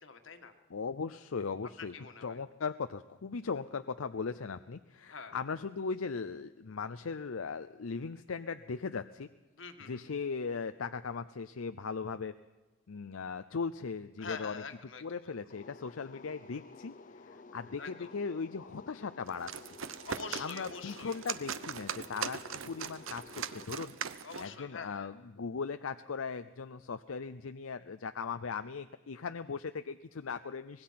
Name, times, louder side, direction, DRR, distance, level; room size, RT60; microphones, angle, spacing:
voice 1, 0.0-0.5 1.8-2.4 5.1-5.3 9.6-10.0 14.2-15.3 17.8-18.1 20.0-21.2 24.2-25.1, left 5 dB, 70° left, 7 dB, 1.8 m, -45 dB
voice 2, 0.7-1.9 2.2-9.3 9.9-12.3 12.9-14.6 15.0-19.7 20.4-23.9 24.4-30.8, left 5 dB, 85° left, 10 dB, 0.6 m, -38 dB
sound 1, 15.5-23.7, left 3 dB, 40° left, 0.6 m, -53 dB
sound 2, 19.3-24.5, right 7 dB, 75° right, 0.8 m, -40 dB
24.5 x 20.0 x 5.9 m, 1.2 s
head